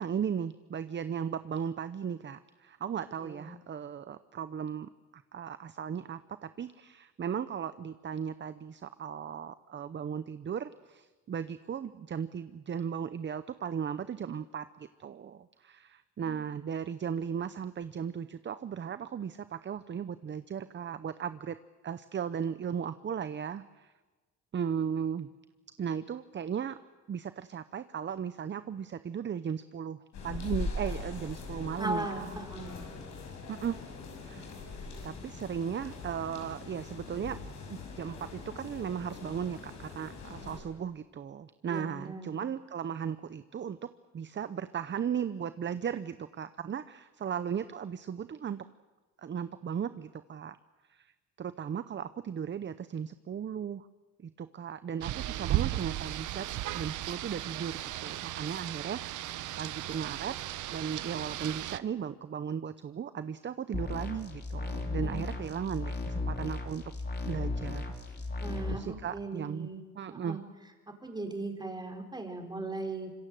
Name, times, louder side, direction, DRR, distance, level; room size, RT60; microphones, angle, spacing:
voice 1, 0.0-21.6 21.8-23.9 24.5-25.3 25.8-26.8 27.1-30.0 30.2-32.4 33.5-33.8 34.2-34.5 35.0-37.4 38.0-43.9 44.1-48.7 49.2-50.6 50.9-51.1 51.4-53.9 54.2-56.5 56.7-60.4 60.7-66.8 67.3-67.8 68.7-69.7 70.0-70.4, right 7 dB, 40° right, 13 dB, 0.8 m, -36 dB
sound 1, 30.1-40.6, left 3 dB, 70° left, 6.4 m, -41 dB
voice 2, 31.8-32.8 41.7-42.3 65.0-65.4 68.4-69.8 70.1-70.4 71.0-73.1, right 2 dB, 15° right, 3 dB, 4.8 m, -38 dB
Rain, 55.0-61.8, right 14 dB, 80° right, 0.9 m, -35 dB
sound 2, 63.7-68.7, left 2 dB, 35° left, 3.8 m, -35 dB
26.0 x 22.5 x 7.8 m, 1.2 s
cardioid pair, 90°, 30 cm